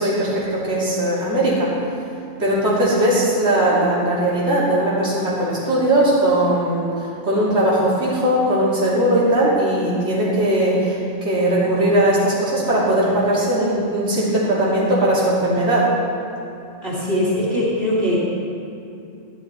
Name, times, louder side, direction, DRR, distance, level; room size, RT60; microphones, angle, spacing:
voice 1, 0.0-1.7 2.4-15.9, right 1 dB, 60° right, -8 dB, 3.2 m, -19 dB
voice 2, 16.8-18.2, left 1 dB, 45° right, -7 dB, 3.2 m, -21 dB
15.0 x 11.5 x 4.4 m, 2.6 s
omnidirectional pair, 1.3 m